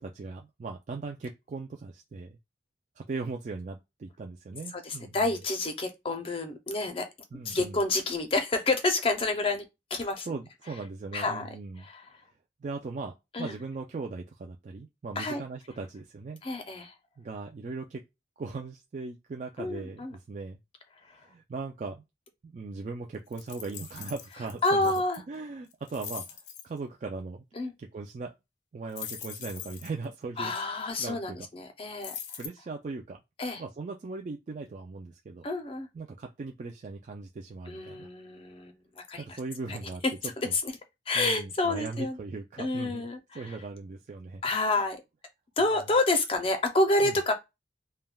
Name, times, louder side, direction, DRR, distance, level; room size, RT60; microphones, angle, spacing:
voice 1, 0.0-2.4 3.0-5.3 7.3-7.8 10.3-11.9 12.6-13.1 13.4-16.4 17.2-18.0 18.4-20.6 21.2-22.0 22.4-24.9 25.3-26.4 26.6-27.4 27.8-28.3 28.7-30.5 31.0-31.5 32.4-33.2 33.5-35.4 35.9-38.1 39.2-40.0 40.4-40.5 41.1-43.1 43.3-44.4 47.0-47.2, right 3 dB, 40° right, 0.3 m, -39 dB
voice 2, 4.7-7.1 7.4-9.6 9.9-10.3 11.1-11.5 11.8-12.1 13.3-13.5 15.2-15.4 16.4-16.9 19.6-20.1 24.6-25.2 27.6-27.7 30.4-32.1 33.4-33.6 35.4-35.9 37.7-38.7 39.1-39.4 39.7-39.8 40.0-40.7 41.1-42.2 42.6-43.5 44.4-45.0 45.6-47.3, left 2 dB, 30° left, 0.5 m, -28 dB
sound 1, 23.3-25.2 25.7-26.6 28.9-30.0 32.0-32.5, left 8 dB, 85° left, 0.5 m, -41 dB
3.3 x 2.1 x 2.2 m
head